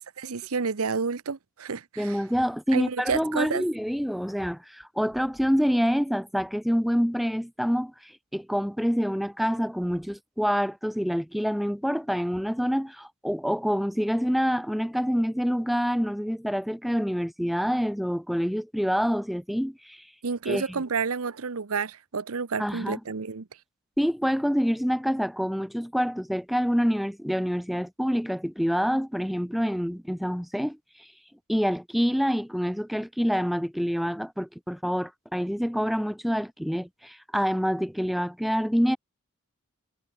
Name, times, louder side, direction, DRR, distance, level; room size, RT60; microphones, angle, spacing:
voice 1, 0.2-2.2 2.7-3.6 20.2-23.5, right 5 dB, 80° right, 0.8 m, -30 dB
voice 2, 2.0-20.1 20.5-20.6 22.6-23.0 24.0-31.1 31.5-39.0, equal, ahead, 0.7 m, -27 dB
head